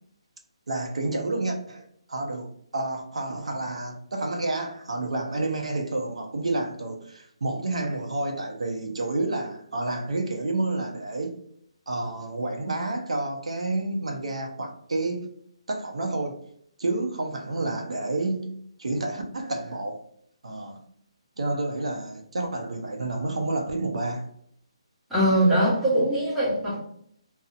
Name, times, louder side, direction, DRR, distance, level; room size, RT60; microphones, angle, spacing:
voice 1, 0.7-11.4 11.9-15.3 15.7-16.4 16.8-18.5 18.8-20.0 20.4-20.8 21.4-24.3, right 2 dB, 85° right, 0.5 m, -29 dB
voice 2, 25.1-26.8, right 1 dB, 5° right, 0.8 m, -22 dB
2.7 x 2.0 x 2.4 m
hypercardioid pair, 165°, 3 cm